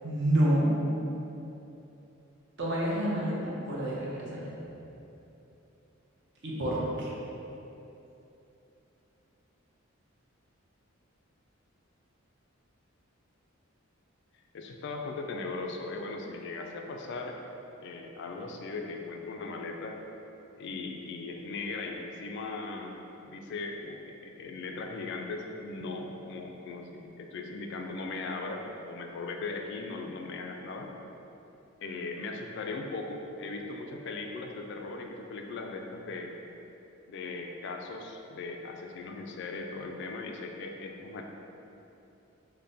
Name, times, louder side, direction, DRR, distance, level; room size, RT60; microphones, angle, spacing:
voice 1, 0.0-0.7 2.6-4.5 6.4-7.1, right 1 dB, 55° right, -5 dB, 0.7 m, -28 dB
voice 2, 14.5-17.4 17.8-20.0 20.6-23.0 23.2-30.9 31.8-36.3 37.1-41.2, left 3 dB, 55° left, 3 dB, 0.3 m, -38 dB
5.3 x 2.1 x 2.6 m, 2.9 s
head